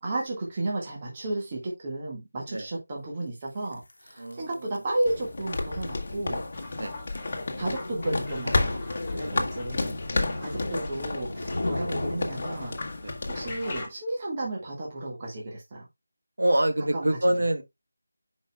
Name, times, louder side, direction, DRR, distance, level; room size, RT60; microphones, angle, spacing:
voice 1, 0.0-6.4 7.6-8.8 9.1-10.0 10.4-12.8 13.3-15.9 16.9-17.1, right 2 dB, 25° right, 1.7 m, -33 dB
sound 1, 3.7-13.1, left 1 dB, 90° left, 1.0 m, -37 dB
voice 2, 4.2-4.7 6.8-6.9 9.3-9.4 10.1-10.4 13.0-13.1 16.4-17.6, right 1 dB, 80° right, 1.7 m, -26 dB
sound 2, 5.0-13.8, left 3 dB, 40° left, 1.4 m, -32 dB
sound 3, 6.5-13.9, left 2 dB, 15° left, 1.8 m, -44 dB
10.5 x 5.3 x 2.3 m
figure-of-eight pair, 175°, 0 cm